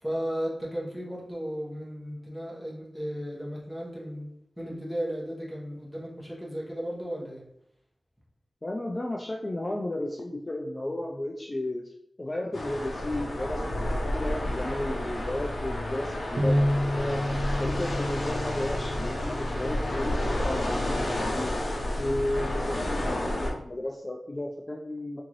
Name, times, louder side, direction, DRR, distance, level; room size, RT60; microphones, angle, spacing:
voice 1, 0.0-4.3 4.6-7.4, equal, ahead, -5 dB, 1.1 m, -35 dB
voice 2, 8.6-11.9 12.2-13.6 14.1-17.2 17.6-21.6 22.0-25.2, left 1 dB, 30° left, 1 dB, 0.3 m, -33 dB
sound 1, 12.5-23.5, left 1 dB, 65° left, 0.7 m, -30 dB
Bass guitar, 16.4-20.8 21.4-22.6, equal, 60° right, 0.5 m, -31 dB
3.7 x 2.5 x 3.1 m, 0.77 s
wide cardioid pair, 80°, 0 cm